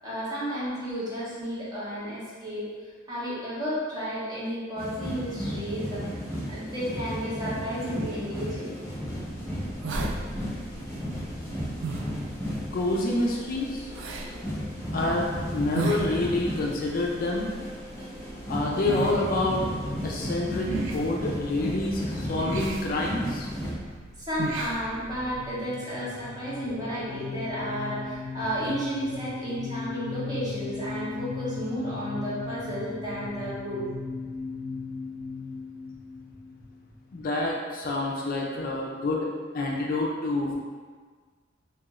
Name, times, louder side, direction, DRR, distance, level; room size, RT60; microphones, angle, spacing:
voice 1, 0.0-2.7 3.1-6.0 6.5-8.7 24.3-33.9, equal, 20° right, -10 dB, 1.0 m, -32 dB
sound 1, 4.8-23.7, equal, 15° left, 0.8 m, -34 dB
sound 2, 8.9-25.5, right 3 dB, 70° right, 0.3 m, -38 dB
voice 2, 12.7-13.9 14.9-17.5 18.5-19.6 20.0-20.7 20.9-23.5 37.1-39.3 39.5-40.5, left 2 dB, 45° left, -2 dB, 0.3 m, -27 dB
sound 3, 24.9-37.1, left 4 dB, 40° right, 1.2 m, -37 dB
2.7 x 2.4 x 3.0 m, 1.5 s
head